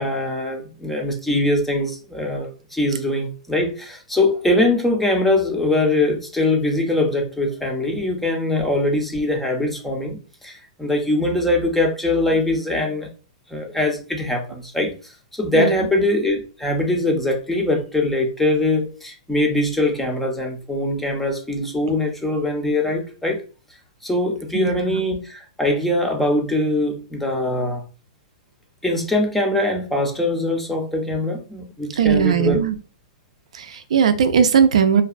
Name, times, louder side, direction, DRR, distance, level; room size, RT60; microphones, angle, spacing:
voice 1, 0.0-13.1 13.5-23.4 24.0-27.8 28.8-32.6, left 1 dB, 5° left, 0.4 m, -22 dB
voice 2, 15.5-15.8 24.5-25.0 32.0-32.7 33.5-35.0, right 7 dB, 85° right, 0.4 m, -18 dB
2.6 x 2.1 x 2.4 m
hypercardioid pair, 155°, 3 cm